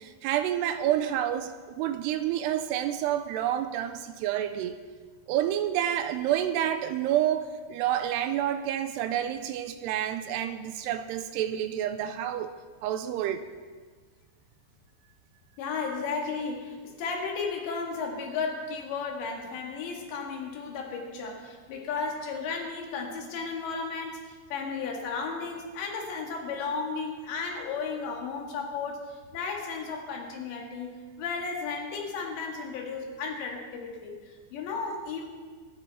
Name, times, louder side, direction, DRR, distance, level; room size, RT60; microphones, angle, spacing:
voice 1, 0.0-4.8 5.3-12.5 12.8-13.5, right 11 dB, 80° right, 10 dB, 2.5 m, -29 dB
voice 2, 15.6-35.3, left 4 dB, 80° left, 1 dB, 4.1 m, -34 dB
24.0 x 10.0 x 4.2 m, 1.5 s
omnidirectional pair, 5.0 m